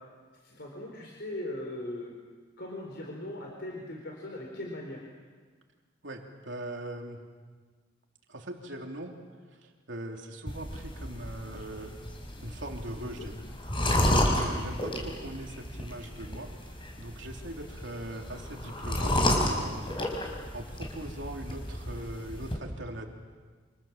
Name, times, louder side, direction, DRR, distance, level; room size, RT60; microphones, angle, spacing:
voice 1, 0.4-2.1 2.6-5.0 13.2-13.3 14.9-15.0, left 1 dB, 60° left, 0 dB, 4.5 m, -39 dB
voice 2, 6.0-7.2 8.3-9.2 9.5-12.0 12.4-13.4 13.8-23.1, right 1 dB, 70° right, 2 dB, 3.3 m, -41 dB
sound 1, 10.5-22.6, left 1 dB, 25° left, 5.2 m, -31 dB
29.0 x 27.0 x 7.5 m, 1.5 s
head